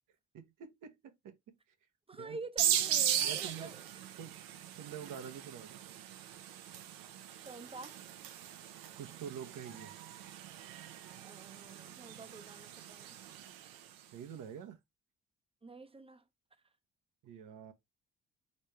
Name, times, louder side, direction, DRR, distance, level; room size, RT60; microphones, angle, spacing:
voice 1, 0.3-1.0 1.2-1.3 2.1-2.4 3.2-3.7 4.2-4.4 4.8-5.8 9.0-9.9 14.1-14.8 17.2-17.7, right 8 dB, 60° right, 1.0 m, -46 dB
voice 2, 2.1-4.0 7.4-8.0 11.1-13.2 15.6-16.2, right 3 dB, 15° right, 0.7 m, -48 dB
sound 1, 2.6-13.9, right 10 dB, 75° right, 0.7 m, -38 dB
4.3 x 3.2 x 3.2 m
hypercardioid pair, 50°, 35 cm